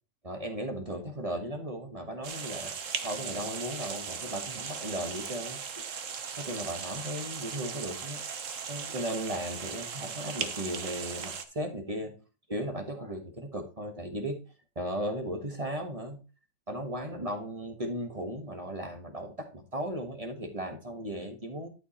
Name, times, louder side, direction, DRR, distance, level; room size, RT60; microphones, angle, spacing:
voice 1, 0.2-2.7 3.0-5.6 6.4-8.2 8.7-12.1 12.5-14.4 14.7-16.2 16.7-21.7, right 1 dB, 20° right, 4 dB, 1.3 m, -36 dB
sound 1, 2.2-11.4, right 6 dB, 50° right, 1.2 m, -38 dB
12.0 x 4.6 x 4.3 m, 0.33 s
omnidirectional pair, 1.9 m